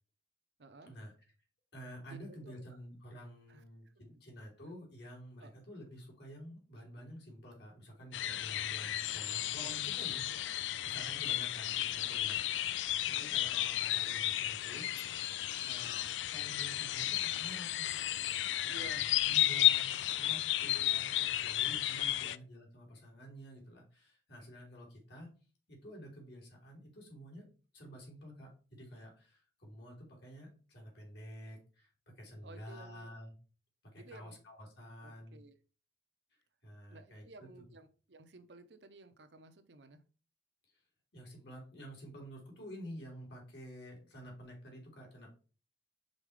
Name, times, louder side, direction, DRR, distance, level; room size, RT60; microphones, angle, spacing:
voice 1, 0.6-0.9 2.1-2.6 3.5-4.0 5.4-5.5 10.3-10.4 13.1-13.3 18.6-19.1 21.6-22.4 32.4-33.1 34.0-34.4 35.0-35.6 36.9-40.0, right 2 dB, 70° right, 10 dB, 0.8 m, -55 dB
voice 2, 1.7-12.8 13.2-14.9 15.6-18.1 19.0-25.3 25.7-27.5 27.7-31.9 32.2-33.3 33.9-35.4 36.3-37.5 41.1-45.3, equal, 65° left, -1 dB, 3.1 m, -50 dB
sound 1, 8.1-22.4, left 13 dB, 85° left, 0.3 m, -33 dB
5.3 x 4.1 x 5.0 m, 0.37 s
head